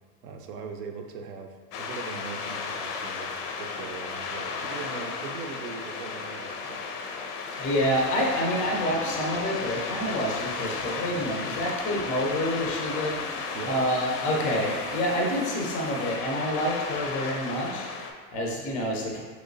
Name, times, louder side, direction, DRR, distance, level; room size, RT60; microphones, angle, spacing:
voice 1, 0.2-7.0 13.5-13.8 14.3-14.4, right 5 dB, 75° right, 4 dB, 0.6 m, -40 dB
sound 1, 1.7-18.1, left 5 dB, 80° left, 0.5 m, -34 dB
voice 2, 7.6-19.2, equal, 20° left, -1 dB, 0.3 m, -28 dB
sound 2, 7.6-16.2, right 1 dB, 30° right, 0.7 m, -46 dB
3.0 x 3.0 x 2.5 m, 1.5 s
hypercardioid pair, 105°, 46 cm